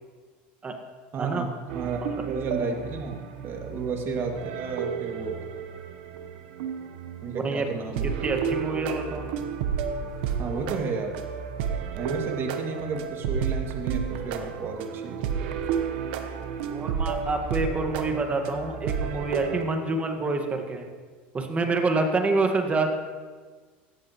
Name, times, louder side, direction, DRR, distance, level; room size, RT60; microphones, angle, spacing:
voice 1, 1.1-1.5 1.7-2.0 2.3-5.4 7.2-8.1 10.4-11.2 11.9-15.2, right 4 dB, 45° right, 2 dB, 2.4 m, -32 dB
sound 1, 1.7-19.6, right 7 dB, 75° right, 1.1 m, -32 dB
voice 2, 7.3-7.7 8.2-9.3 16.7-20.9 21.3-22.9, right 3 dB, 25° right, 4 dB, 1.7 m, -27 dB
16.5 x 13.5 x 3.1 m, 1.5 s
supercardioid pair, 105°, 6 cm